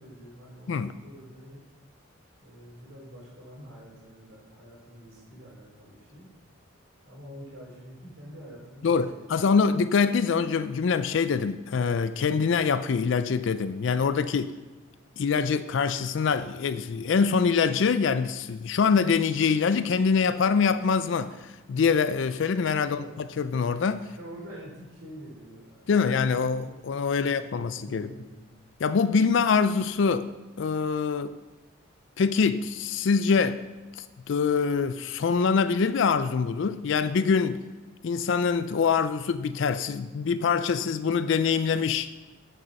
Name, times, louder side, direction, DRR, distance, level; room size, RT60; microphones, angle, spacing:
voice 1, 0.0-1.6 2.4-6.3 7.0-9.5 22.8-23.1 24.1-26.8 27.0-28.4, equal, 70° right, -3 dB, 3.7 m, -46 dB
voice 2, 8.8-14.5 15.2-24.1 25.9-28.1 28.8-30.3 30.6-31.3 32.2-33.6 33.9-37.6 38.0-42.1, left 5 dB, 60° left, 13 dB, 0.4 m, -24 dB
8.8 x 6.7 x 6.3 m, 1.2 s
head